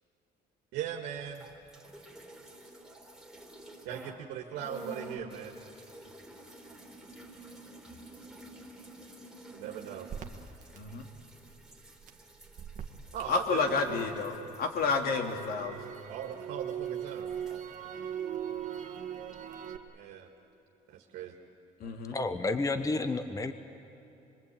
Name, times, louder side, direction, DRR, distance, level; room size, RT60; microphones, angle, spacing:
voice 1, 0.7-1.4 3.9-5.5 9.5-10.1 13.1-14.1 16.1-17.3 19.9-20.3 20.9-21.3, right 9 dB, 90° right, 0 dB, 1.8 m, -39 dB
sound 1, 1.3-4.2 4.5-16.4 16.7-17.6, right 1 dB, ahead, 3.7 m, -51 dB
Crackle, 10.1-14.2 14.6-19.8, right 9 dB, 50° right, 1.8 m, -40 dB
voice 2, 13.3-14.3 14.6-15.8 21.8-22.2, left 4 dB, 65° left, 4 dB, 3.0 m, -30 dB
voice 3, 22.1-23.5, left 3 dB, 20° left, 10 dB, 1.1 m, -30 dB
25.5 x 22.5 x 8.7 m, 3.0 s
cardioid pair, 110°, 17 cm